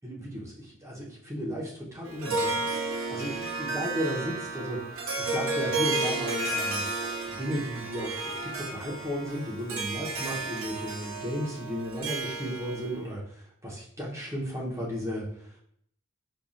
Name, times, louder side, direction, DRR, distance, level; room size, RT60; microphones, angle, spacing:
voice 1, 0.0-2.7 3.1-6.9 7.3-15.3, equal, 15° right, -5 dB, 0.7 m, -34 dB
Harp, 2.1-13.0, right 2 dB, 65° right, 0.6 m, -32 dB
5.5 x 2.3 x 2.4 m, 0.67 s
head